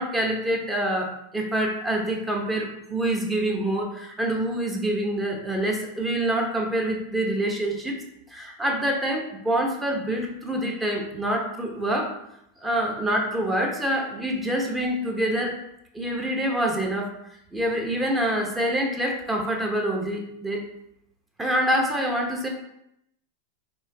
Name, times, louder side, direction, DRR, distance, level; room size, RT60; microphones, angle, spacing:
voice 1, 0.0-8.0 8.3-12.1 12.6-15.6 15.9-17.1 17.5-20.6 21.4-22.5, right 1 dB, 10° right, 1 dB, 0.9 m, -26 dB
4.3 x 2.9 x 3.4 m, 0.78 s
hypercardioid pair, 105°, 0 cm